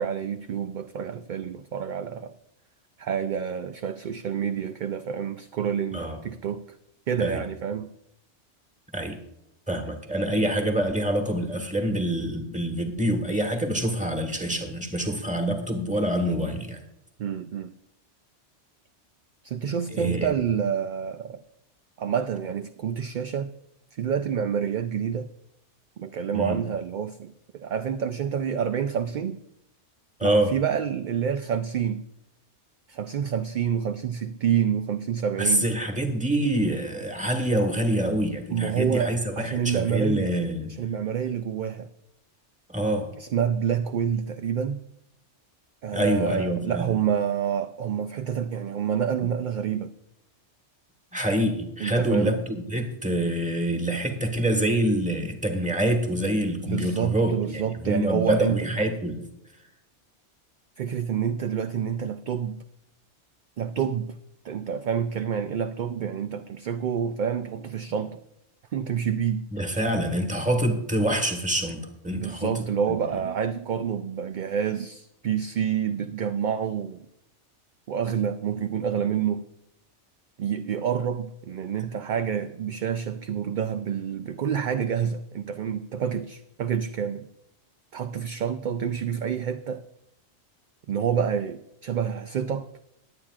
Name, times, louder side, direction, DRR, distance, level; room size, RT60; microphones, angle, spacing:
voice 1, 0.0-2.3 3.0-6.6 7.1-7.9 17.2-17.7 19.4-21.4 22.0-23.5 23.9-25.3 26.0-29.4 30.2-32.0 32.9-35.7 38.5-40.3 40.8-41.9 43.2-44.8 45.8-49.9 51.8-52.4 56.7-58.7 60.8-62.6 63.6-64.2 64.4-68.2 68.7-69.5 72.2-77.1 77.9-79.4 80.4-87.2 87.9-89.8 90.9-92.7, right 8 dB, 60° right, 8 dB, 0.5 m, -28 dB
voice 2, 9.7-16.8 19.9-20.3 26.3-26.6 30.2-30.5 35.4-40.7 42.7-43.1 45.9-46.9 51.1-59.3 69.5-73.0, right 1 dB, 5° right, 5 dB, 1.4 m, -26 dB
21.5 x 8.8 x 2.4 m, 0.81 s
omnidirectional pair, 1.2 m